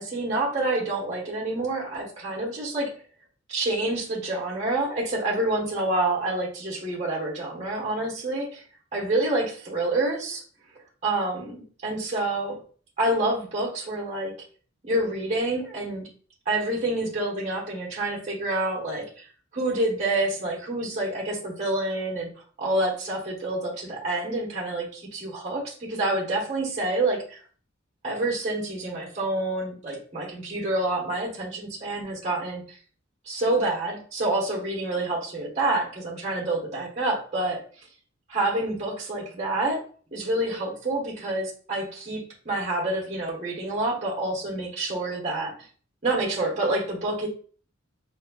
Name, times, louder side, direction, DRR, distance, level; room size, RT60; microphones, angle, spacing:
voice 1, 0.0-2.9 3.5-8.6 8.9-10.4 11.0-12.6 13.0-14.3 14.8-16.1 16.4-19.3 19.5-22.3 22.6-27.4 28.0-32.6 33.3-37.6 38.3-39.8 40.1-45.5 46.0-47.3, right 2 dB, 35° right, -2 dB, 1.2 m, -27 dB
4.2 x 2.7 x 2.3 m, 0.43 s
head